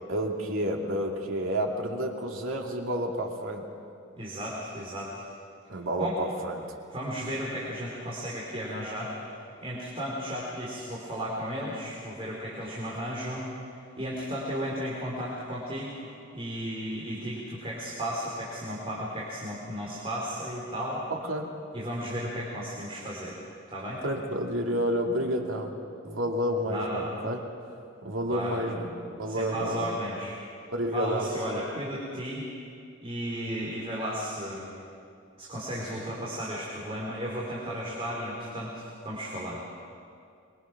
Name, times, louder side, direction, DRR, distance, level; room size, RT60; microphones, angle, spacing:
voice 1, 0.1-3.6 5.7-6.6 21.1-21.5 24.0-25.8 26.0-27.4 28.0-29.9 30.7-31.3, equal, 80° right, 1 dB, 2.6 m, -30 dB
voice 2, 4.2-5.2 6.0-6.2 6.9-9.2 9.6-13.5 14.0-21.0 21.7-23.4 23.7-24.0 26.7-27.1 28.3-28.6 29.3-30.3 30.9-32.4 33.0-34.7 35.4-39.6, equal, 30° right, -5 dB, 4.0 m, -34 dB
24.0 x 23.5 x 6.0 m, 2.3 s
head